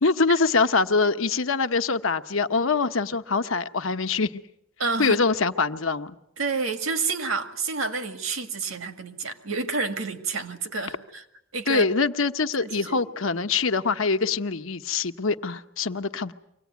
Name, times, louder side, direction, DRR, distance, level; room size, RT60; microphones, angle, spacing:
voice 1, 0.0-4.3 5.0-6.1 11.7-16.3, left 4 dB, 80° left, 9 dB, 1.0 m, -24 dB
voice 2, 4.8-5.2 6.4-11.2 11.5-11.8 12.6-13.0, right 4 dB, 85° right, 8 dB, 2.0 m, -29 dB
24.5 x 18.5 x 9.4 m, 0.84 s
head